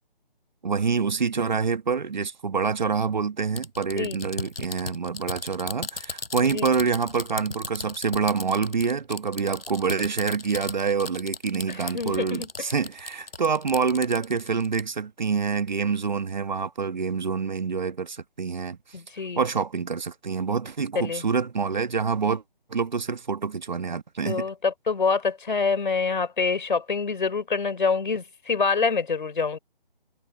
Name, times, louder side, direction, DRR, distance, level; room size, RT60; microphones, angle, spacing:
voice 1, 0.6-18.8 19.4-22.4 22.7-24.5, right 5 dB, 50° right, 1.3 m, -26 dB
sound 1, 3.6-14.8, left 3 dB, 80° left, 5.3 m, -36 dB
voice 2, 11.7-12.5 18.9-19.4 21.0-21.2 24.3-29.6, left 4 dB, 55° left, 3.9 m, -26 dB
figure-of-eight pair, 170°, 29 cm